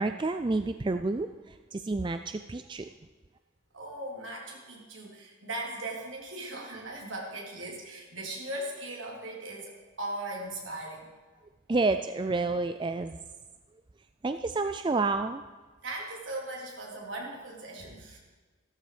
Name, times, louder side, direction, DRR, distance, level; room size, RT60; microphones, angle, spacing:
voice 1, 0.0-2.9 11.7-13.2 14.2-15.4, right 3 dB, 25° right, 9 dB, 0.3 m, -29 dB
voice 2, 3.7-11.1 15.8-18.2, right 1 dB, 70° right, -2 dB, 3.5 m, -38 dB
14.0 x 13.5 x 5.0 m, 1.3 s
head